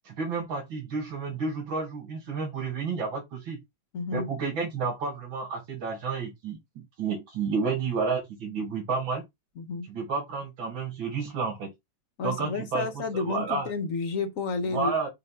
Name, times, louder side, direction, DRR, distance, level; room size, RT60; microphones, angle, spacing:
voice 1, 0.0-3.6 4.1-9.2 9.9-11.7 12.2-13.7 14.7-15.1, right 4 dB, 75° right, 2.6 m, -31 dB
voice 2, 3.9-4.3 9.6-9.9 12.2-14.9, left 4 dB, 50° left, 1.1 m, -31 dB
6.6 x 2.9 x 5.6 m
omnidirectional pair, 2.2 m